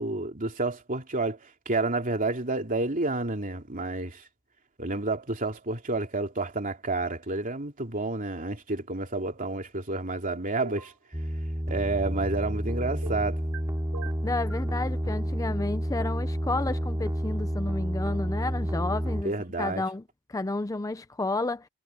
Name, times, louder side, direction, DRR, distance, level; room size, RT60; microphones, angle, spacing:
voice 1, 0.0-4.2 4.8-10.9 11.7-13.4 19.2-19.8, right 2 dB, 40° right, 3.0 m, -30 dB
sound 1, 10.6-11.0 13.0-13.6 13.9-14.7, right 5 dB, 90° right, 3.4 m, -43 dB
sound 2, 11.1-19.2, equal, 15° right, 2.9 m, -30 dB
voice 2, 14.2-19.3 19.6-20.0 20.3-21.7, left 2 dB, 15° left, 0.5 m, -31 dB
head